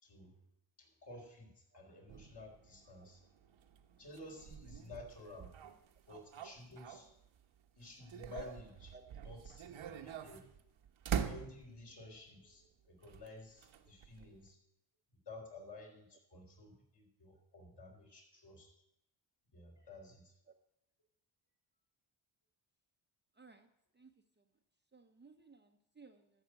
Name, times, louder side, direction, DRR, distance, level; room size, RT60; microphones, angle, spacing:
voice 1, 0.8-3.2 4.0-5.5 6.1-7.1 7.8-8.9 9.2-10.5 11.3-14.6 15.3-18.7 19.5-20.3, left 2 dB, 55° left, 0 dB, 4.5 m, -53 dB
sound 1, 2.1-7.4 7.8-12.0 13.0-14.5, right 8 dB, 70° right, 1.2 m, -45 dB
voice 2, 23.3-23.7 23.9-24.1 24.4-24.5 24.9-26.4, right 4 dB, 20° right, 5 dB, 0.8 m, -60 dB
13.5 x 6.6 x 8.1 m, 0.81 s
cardioid pair, 100°, 49 cm